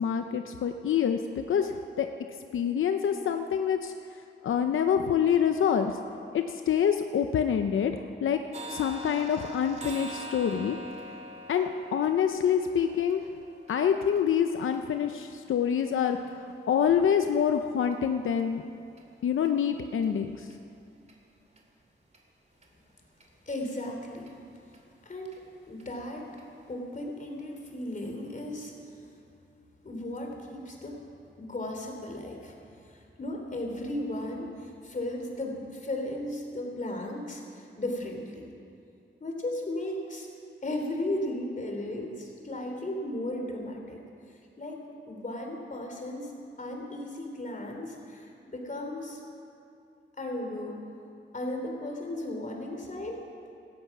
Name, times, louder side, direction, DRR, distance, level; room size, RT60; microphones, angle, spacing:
voice 1, 0.0-2.1 2.5-3.9 4.4-6.0 6.3-7.9 8.2-8.4 8.7-10.8 11.5-13.2 13.7-18.6 19.2-20.5, left 8 dB, 90° left, 6 dB, 0.7 m, -26 dB
sound 1, 8.5-16.3 16.8-16.9 17.3-17.5 17.9-18.0 18.4-18.5 19.0-19.1 19.4-19.5 20.0-20.1 20.5-20.6 21.1-21.2 21.6-21.7 22.1-22.2 22.6-22.7 23.2-23.3 23.7-23.8 24.3-24.4 24.7-24.8 25.2-25.4 25.8-25.9 26.4-26.5, equal, 35° right, 2.6 m, -44 dB
voice 2, 23.5-24.3 25.0-25.3 25.7-26.4 26.7-28.7 29.0-29.1 29.8-31.0 31.4-32.5 32.8-38.4 39.2-40.3 40.6-44.0 44.6-44.8 45.1-46.3 46.6-49.2 50.2-50.8 51.3-53.2, left 1 dB, 40° left, 2 dB, 3.3 m, -35 dB
17.5 x 13.5 x 6.0 m, 2.6 s
cardioid pair, 85°, 20 cm